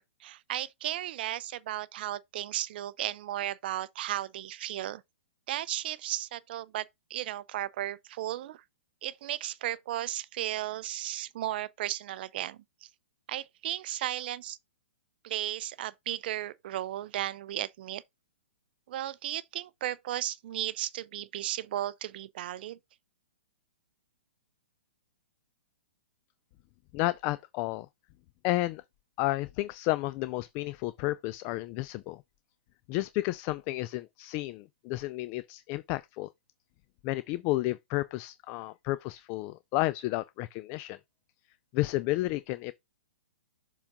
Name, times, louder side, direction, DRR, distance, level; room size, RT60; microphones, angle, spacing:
voice 1, 0.0-5.0 5.5-8.6 9.0-12.9 13.3-14.6 15.2-18.0 18.9-22.8, right 13 dB, 50° right, 0.4 m, -35 dB
voice 2, 26.9-27.9 28.4-28.8 29.2-32.2 32.9-36.3 37.0-41.0 41.7-42.7, left 18 dB, 35° left, 0.3 m, -31 dB
7.0 x 3.7 x 3.7 m
hypercardioid pair, 125°, 7 cm